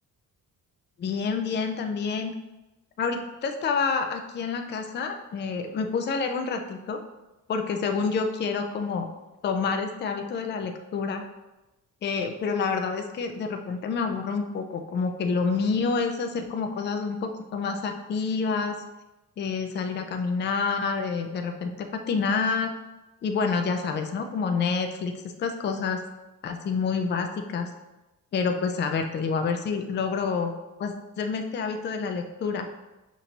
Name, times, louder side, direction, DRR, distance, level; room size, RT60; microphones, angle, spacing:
voice 1, 1.0-2.3 3.0-7.0 7.5-9.1 9.4-11.2 12.0-18.8 19.4-22.7 23.2-26.0 26.4-27.7 28.3-30.5 30.8-32.7, left 5 dB, 30° left, 6 dB, 0.4 m, -28 dB
5.9 x 2.6 x 2.8 m, 1.0 s
cardioid pair, 140°, 35 cm